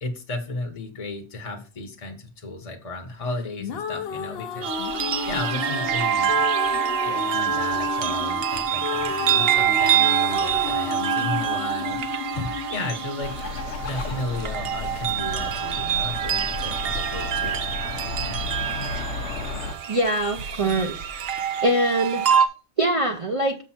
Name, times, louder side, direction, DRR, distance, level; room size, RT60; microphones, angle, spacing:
voice 1, 0.0-4.7 5.3-6.5 7.0-18.4, left 2 dB, 35° left, 4 dB, 0.9 m, -34 dB
sound 1, 3.4-14.4, left 7 dB, 65° left, 0.9 m, -32 dB
sound 2, 4.6-22.5, right 9 dB, 65° right, 0.9 m, -26 dB
Bird, 13.2-19.7, left 4 dB, 85° left, 1.1 m, -33 dB
voice 2, 19.9-21.0 21.6-22.3 22.8-23.5, right 1 dB, 35° right, 3 dB, 0.6 m, -23 dB
6.7 x 6.0 x 4.3 m, 0.35 s
omnidirectional pair, 1.1 m